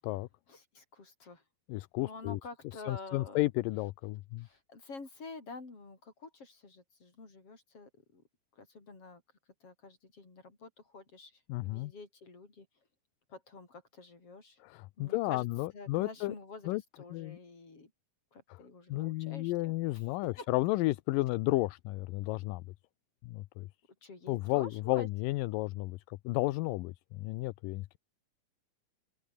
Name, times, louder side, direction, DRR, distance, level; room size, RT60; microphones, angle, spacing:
voice 1, 0.5-1.4 2.0-3.4 4.4-8.2 8.6-9.2 9.6-12.7 13.3-14.6 15.0-15.5 15.7-17.9 18.3-20.0 20.4-20.5 24.0-25.1, left 3 dB, 40° left, 6.7 m, -49 dB
voice 2, 1.7-2.4 2.9-4.5 11.5-11.9 14.6-16.3 16.7-16.8 17.1-17.4 18.5-18.6 18.9-22.6 23.2-23.7 24.3-28.0, left 19 dB, 80° left, 2.2 m, -33 dB
open air
omnidirectional pair, 4.3 m